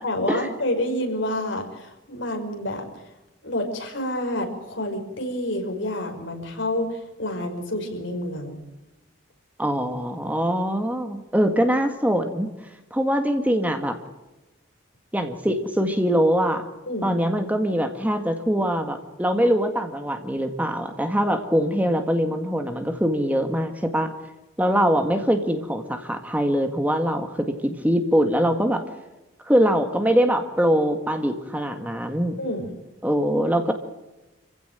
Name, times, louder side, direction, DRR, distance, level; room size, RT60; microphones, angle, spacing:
voice 1, 0.0-2.9 3.4-8.6 16.9-17.2 32.4-32.7, left 1 dB, 70° left, 3 dB, 5.7 m, -28 dB
voice 2, 9.6-12.5 12.9-14.0 15.1-16.7 17.0-24.1 24.6-27.3 27.6-28.8 29.5-32.4 33.0-33.7, equal, 10° right, 6 dB, 1.8 m, -23 dB
27.5 x 16.5 x 8.9 m, 1.1 s
head